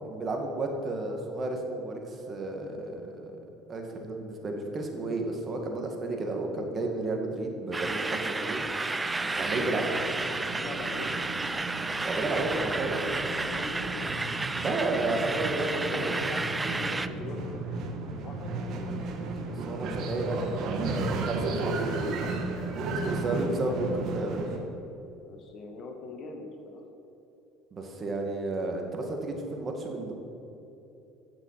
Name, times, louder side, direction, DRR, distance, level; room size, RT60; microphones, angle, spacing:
voice 1, 0.0-3.4 3.7-9.0 9.4-9.8 12.0-13.0 14.6-16.2 19.4-22.0 22.6-22.7 22.9-24.4 27.7-30.1, right 2 dB, 35° right, 2 dB, 2.1 m, -32 dB
sound 1, 7.7-17.1, right 3 dB, 15° right, 0.5 m, -32 dB
sound 2, 9.0-24.6, right 3 dB, 60° right, 1.4 m, -34 dB
voice 2, 9.3-11.2 12.7-14.5 15.9-18.7 25.3-26.8, left 3 dB, 50° left, 4 dB, 1.7 m, -42 dB
15.5 x 6.2 x 5.8 m, 2.9 s
supercardioid pair, 80°, 0 cm